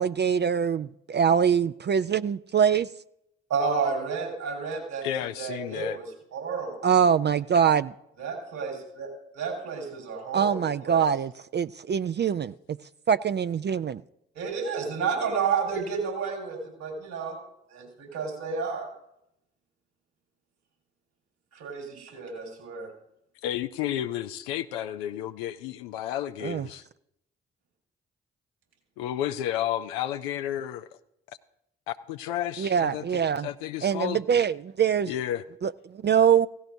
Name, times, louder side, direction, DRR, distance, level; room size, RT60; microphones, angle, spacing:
voice 1, 0.0-2.9 6.8-7.9 10.3-12.8 13.1-14.0 26.4-26.7 32.6-33.5 33.8-35.1 35.6-36.5, right 7 dB, 35° right, 0.4 m, -24 dB
voice 2, 3.5-5.0 5.4-6.8 8.2-11.1 14.3-17.4 17.7-18.9 21.5-22.9, right 5 dB, 75° right, 5.0 m, -31 dB
voice 3, 5.0-6.0 23.4-26.8 29.0-30.9 31.9-33.0 33.4-34.2 35.0-35.4, left 11 dB, 90° left, 0.5 m, -31 dB
16.5 x 16.0 x 2.7 m
hypercardioid pair, 40°, 29 cm